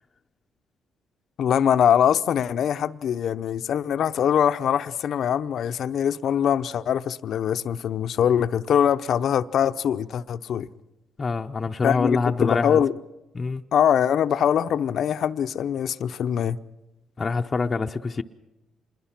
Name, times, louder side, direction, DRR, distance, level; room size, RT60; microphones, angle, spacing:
voice 1, 1.4-10.7 11.8-12.9 13.7-16.6, left 9 dB, 65° left, 0.7 m, -23 dB
voice 2, 11.2-12.8 13.3-13.6 17.2-18.2, left 4 dB, 35° left, 0.7 m, -25 dB
26.5 x 21.0 x 5.9 m
cardioid pair, 90°, 0 cm